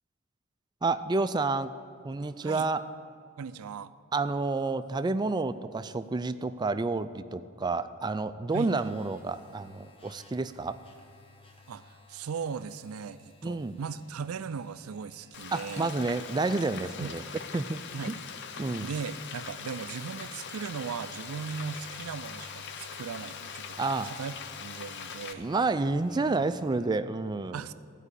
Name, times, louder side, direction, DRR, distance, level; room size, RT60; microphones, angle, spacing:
voice 1, 0.8-1.7 2.0-2.8 4.1-10.8 13.4-13.8 15.5-17.2 17.5-17.8 18.6-18.9 23.8-24.1 25.4-27.6, right 3 dB, 20° right, 12 dB, 0.3 m, -29 dB
voice 2, 3.4-3.9 8.5-8.7 11.7-15.9 17.0-17.3 17.9-18.2 18.8-25.5 27.5-27.7, right 6 dB, 90° right, 14 dB, 0.4 m, -38 dB
sound 1, 8.5-26.8, left 3 dB, 25° left, 1.0 m, -55 dB
Frying (food), 15.3-25.3, left 6 dB, 55° left, 0.6 m, -42 dB
14.5 x 5.0 x 8.2 m, 2.5 s
head